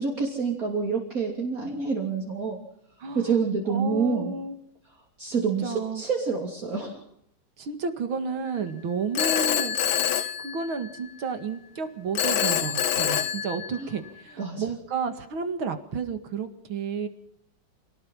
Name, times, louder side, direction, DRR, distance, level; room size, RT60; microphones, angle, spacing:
voice 1, 0.0-2.6 3.2-4.3 5.2-7.0 13.8-13.9 14.4-14.6, right 5 dB, 45° right, -1 dB, 3.5 m, -27 dB
voice 2, 3.0-3.4 3.7-4.5 5.6-6.0 7.6-9.8 10.4-17.1, right 5 dB, 80° right, 9 dB, 2.8 m, -31 dB
Telephone, 9.1-11.1 12.1-14.1, left 10 dB, 80° left, 1.9 m, -26 dB
26.5 x 18.5 x 5.5 m, 0.71 s
omnidirectional pair, 2.2 m